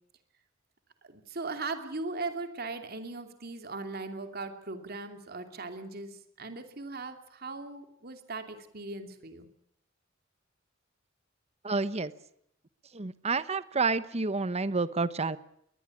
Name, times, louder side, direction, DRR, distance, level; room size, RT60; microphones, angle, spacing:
voice 1, 1.0-9.5, right 3 dB, 55° right, 7 dB, 2.8 m, -39 dB
voice 2, 11.6-12.1 12.9-15.4, right 4 dB, 35° right, 15 dB, 1.0 m, -29 dB
22.0 x 20.0 x 7.3 m, 0.73 s
head